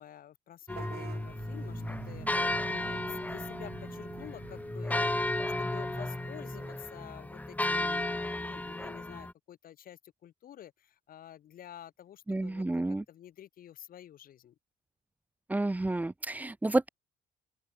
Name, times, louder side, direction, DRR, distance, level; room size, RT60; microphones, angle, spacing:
voice 1, 0.0-5.3 5.6-14.5, left 11 dB, 60° left, 3.8 m, -50 dB
sound 1, 0.7-9.3, left 2 dB, 10° left, 4.0 m, -34 dB
Vehicle horn car horn honking / Bus, 0.7-6.8, right 13 dB, 70° right, 6.4 m, -49 dB
voice 2, 12.3-13.0 15.5-16.9, right 2 dB, 10° right, 0.9 m, -30 dB
open air
cardioid pair, 110°, 17 cm